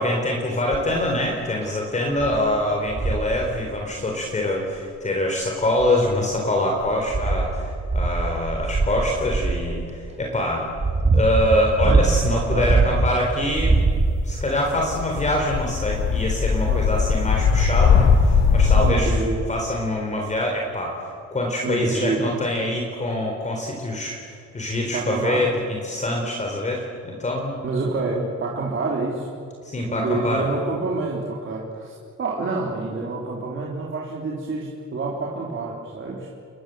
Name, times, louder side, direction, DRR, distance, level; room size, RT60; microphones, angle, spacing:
voice 1, 0.0-10.7 11.1-13.8 14.2-19.2 19.5-20.9 21.3-27.5 29.6-30.5, left 1 dB, 25° left, 0 dB, 4.0 m, -24 dB
sound 1, 0.7-1.0 1.6-1.7 2.2-2.4 2.9-3.3 4.7-4.8 5.6-6.3 6.8-9.7 10.4-13.2 13.5-14.4 15.3-15.4, right 3 dB, 20° right, 2.7 m, -22 dB
voice 2, 12.3-12.7 16.7-17.2 18.8-19.4 21.6-22.3 24.9-25.5 27.6-29.3 29.8-36.3, right 3 dB, 45° right, -3 dB, 3.8 m, -28 dB
sound 2, 14.6-18.9, left 5 dB, 60° left, 4.1 m, -19 dB
30.0 x 22.5 x 7.9 m, 2.4 s
cardioid pair, 145°, 29 cm